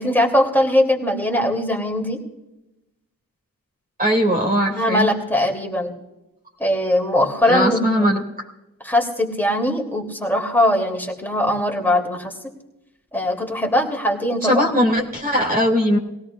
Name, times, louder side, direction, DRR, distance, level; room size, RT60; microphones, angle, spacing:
voice 1, 0.0-2.2 4.7-6.0 6.6-8.0 8.8-12.3 13.1-14.7, left 1 dB, 5° left, 0 dB, 2.9 m, -20 dB
voice 2, 4.0-5.1 7.4-8.2 14.4-16.0, equal, 25° right, 1 dB, 2.5 m, -19 dB
21.5 x 17.0 x 2.4 m, 0.95 s
cardioid pair, 90°, 35 cm